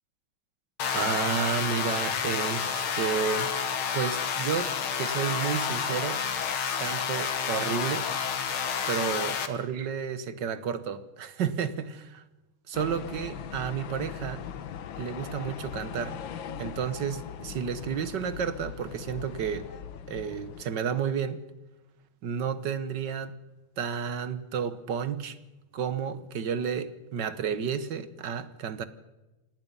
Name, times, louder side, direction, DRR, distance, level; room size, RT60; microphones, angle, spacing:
sound 1, 0.8-9.5, left 7 dB, 85° left, 2.3 m, -29 dB
voice 1, 0.9-3.5 3.9-6.2 6.8-8.1 8.9-12.2 12.7-14.5 15.0-16.2 16.6-19.7 20.1-21.4 22.2-23.4 23.8-25.4 25.7-28.8, right 7 dB, 60° right, 1.7 m, -31 dB
sound 2, 12.7-20.6, left 8 dB, 70° left, 1.8 m, -40 dB
27.0 x 18.5 x 5.5 m
omnidirectional pair, 2.3 m